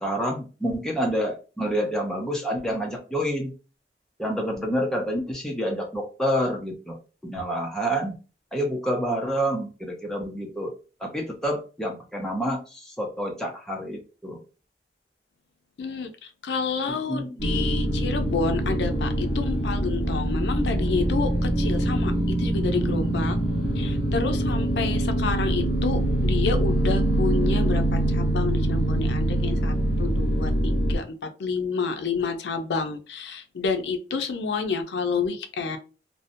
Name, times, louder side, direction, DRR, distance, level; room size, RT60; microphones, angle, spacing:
voice 1, 0.0-3.5 4.2-7.0 7.2-8.1 8.5-10.7 11.0-12.6 13.0-14.4 17.1-17.3 24.8-25.0, equal, 5° left, 0 dB, 0.4 m, -28 dB
voice 2, 15.8-23.4 23.8-35.8, left 4 dB, 75° left, 7 dB, 0.4 m, -29 dB
sound 1, 17.4-31.0, right 1 dB, 35° left, 1.1 m, -24 dB
2.6 x 2.1 x 2.5 m, 0.34 s
head